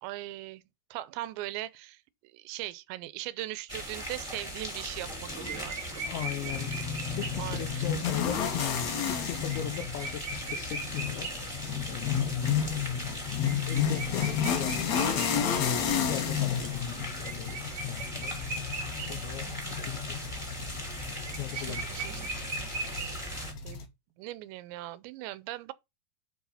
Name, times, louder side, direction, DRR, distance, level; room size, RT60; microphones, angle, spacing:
voice 1, 0.0-0.6 0.9-5.7 7.4-7.9 16.2-16.6 19.5-19.8 21.5-22.3 23.0-23.9 24.2-25.7, right 16 dB, 85° right, 2.9 m, -40 dB
sound 1, 3.7-23.5, equal, 15° left, 1.2 m, -39 dB
sound 2, 4.9-5.2 5.4-7.7 8.4-8.5 8.7-8.8 9.2-16.0 16.4-19.3 19.6-19.7 20.0-23.2, right 3 dB, 40° right, 1.7 m, -40 dB
voice 2, 6.0-6.8 7.1-8.6 9.0-11.5 11.9-12.4 13.7-15.2 15.9-18.4 19.0-19.5 19.9-20.2 21.3-21.9, left 11 dB, 90° left, 3.3 m, -39 dB
sound 3, 6.5-23.8, left 8 dB, 70° left, 1.6 m, -32 dB
7.8 x 4.8 x 5.6 m
omnidirectional pair, 5.1 m